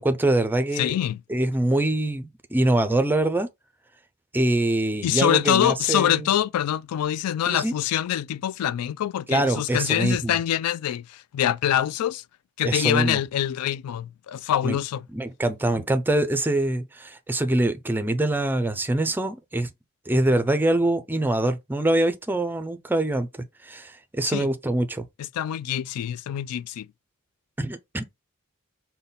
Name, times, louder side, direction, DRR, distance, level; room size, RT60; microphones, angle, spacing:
voice 1, 0.0-0.9 1.3-3.5 4.3-6.3 7.5-7.7 9.3-10.4 12.6-13.2 14.6-14.8 15.1-19.7 20.1-23.3 23.6-25.0 27.6-28.0, right 1 dB, 10° right, 0.4 m, -24 dB
voice 2, 0.8-1.2 5.0-12.2 12.6-15.1 24.2-24.5 25.2-26.9, left 11 dB, 85° left, 0.3 m, -25 dB
5.3 x 2.2 x 4.0 m
head